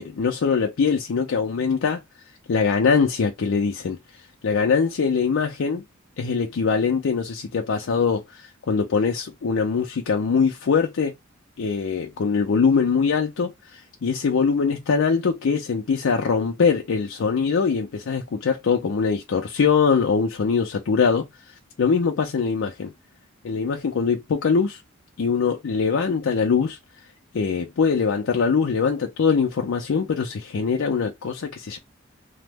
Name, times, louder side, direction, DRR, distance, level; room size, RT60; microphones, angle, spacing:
voice 1, 0.0-2.0 2.5-4.0 4.4-5.8 6.2-11.1 11.6-21.2 21.8-22.9 23.4-24.8 25.2-26.8 27.3-31.8, left 5 dB, 70° left, 0.4 m, -22 dB
2.9 x 2.0 x 3.4 m
head